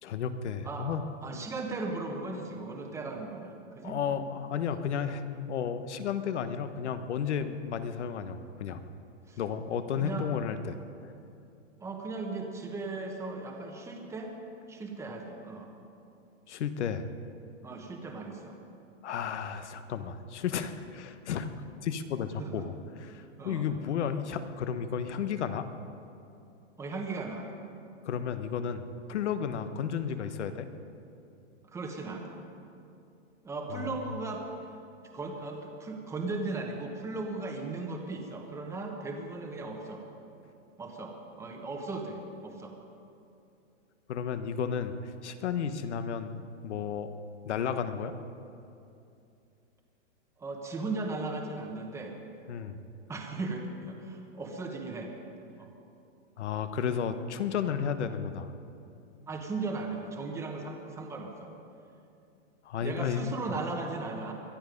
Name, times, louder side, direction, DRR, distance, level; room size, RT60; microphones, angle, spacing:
voice 1, 0.0-1.0 3.8-8.8 9.4-10.8 16.5-17.0 19.0-21.5 21.8-25.7 28.0-30.7 33.7-33.9 44.1-45.0 45.2-47.1 47.4-48.1 52.5-52.8 56.4-58.5 62.6-63.3, left 7 dB, 65° left, 10 dB, 1.2 m, -33 dB
voice 2, 1.2-4.0 9.3-9.4 10.0-10.3 11.8-14.3 14.7-15.7 17.6-18.6 22.4-22.7 23.4-23.6 26.8-27.5 31.7-32.4 33.4-34.5 35.1-40.0 40.8-42.7 50.4-52.2 53.1-55.1 55.6-55.7 59.3-61.5 62.8-64.3, right 3 dB, 5° right, 2 dB, 1.2 m, -37 dB
22.0 x 12.0 x 5.3 m, 2.6 s
hypercardioid pair, 160°, 37 cm